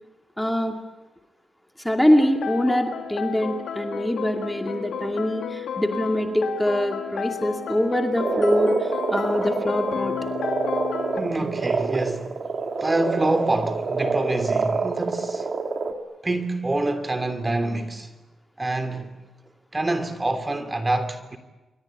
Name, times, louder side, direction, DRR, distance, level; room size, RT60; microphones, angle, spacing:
voice 1, 0.4-0.7 1.8-10.2, equal, 5° left, 2.5 m, -24 dB
sound 1, 2.2-11.2, left 7 dB, 85° left, 2.7 m, -32 dB
Frog, 8.2-15.9, right 4 dB, 50° right, 3.2 m, -27 dB
voice 2, 11.1-15.6 16.2-18.1 18.6-19.2 19.7-21.4, right 2 dB, 20° right, 3.0 m, -26 dB
28.5 x 23.0 x 9.0 m
cardioid pair, 90°, 0 cm